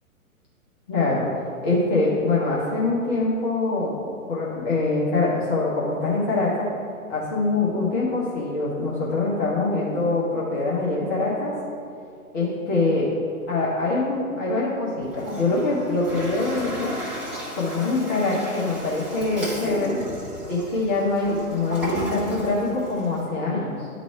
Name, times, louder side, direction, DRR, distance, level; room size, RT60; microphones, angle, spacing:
voice 1, 0.9-1.3 1.6-6.7 7.1-11.5 12.3-13.1 13.5-17.0 17.5-20.0 20.5-23.9, left 3 dB, 30° left, -7 dB, 1.2 m, -24 dB
Toilet flush, 15.0-23.2, equal, 5° right, 1.3 m, -34 dB
10.5 x 4.1 x 4.6 m, 2.4 s
figure-of-eight pair, 120°, 44 cm